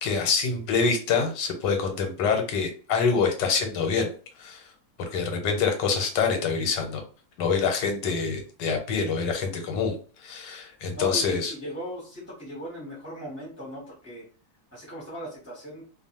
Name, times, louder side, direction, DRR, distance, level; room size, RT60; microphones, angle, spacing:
voice 1, 0.0-4.1 4.4-4.6 5.1-7.0 7.4-10.0 10.2-11.5, left 5 dB, 85° left, 4 dB, 1.4 m, -26 dB
voice 2, 11.0-14.2 14.7-15.8, equal, 10° right, -4 dB, 0.8 m, -37 dB
2.6 x 2.4 x 2.8 m, 0.39 s
omnidirectional pair, 1.8 m